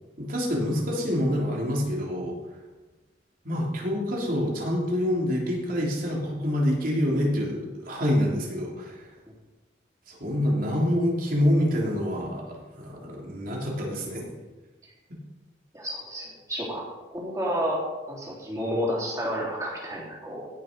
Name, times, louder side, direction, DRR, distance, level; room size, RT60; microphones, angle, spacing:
voice 1, 0.2-2.3 3.4-9.1 10.1-14.2, equal, 50° right, -2 dB, 3.2 m, -26 dB
voice 2, 15.7-16.8 17.1-17.8 18.1-20.5, equal, 20° right, -4 dB, 3.5 m, -30 dB
16.5 x 6.6 x 5.3 m, 1.2 s
head